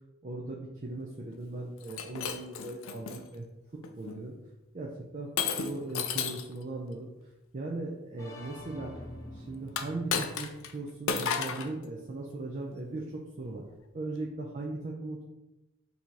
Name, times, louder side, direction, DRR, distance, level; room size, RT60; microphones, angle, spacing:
voice 1, 0.2-3.5 3.7-4.4 4.7-5.3 5.6-7.1 7.5-8.9 9.3-13.6 13.9-15.2, right 2 dB, 35° right, -2 dB, 0.4 m, -38 dB
Shatter, 1.8-3.2 3.8-4.2 5.4-6.5 9.7-10.7 11.1-11.7, left 6 dB, 70° left, 0.4 m, -33 dB
sound 1, 8.2-12.0, left 1 dB, 15° left, 0.6 m, -48 dB
3.8 x 2.8 x 4.6 m, 0.96 s
head